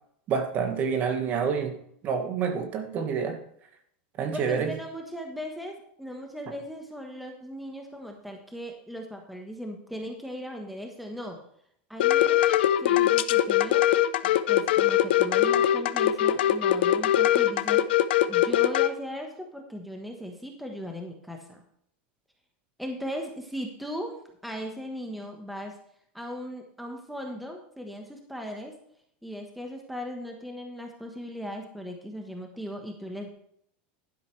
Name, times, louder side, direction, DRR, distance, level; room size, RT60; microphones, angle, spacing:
voice 1, 0.3-1.8 2.0-3.4 4.2-4.8, right 6 dB, 30° right, 7 dB, 1.5 m, -28 dB
voice 2, 4.3-11.4 11.9-12.5 12.8-13.8 14.2-17.9 18.3-21.6 22.8-25.7 26.1-28.7 29.2-33.3, equal, ahead, 2 dB, 1.2 m, -38 dB
sound 1, 12.0-18.9, left 12 dB, 80° left, 0.7 m, -22 dB
11.5 x 10.5 x 3.3 m, 0.69 s
supercardioid pair, 165°, 6 cm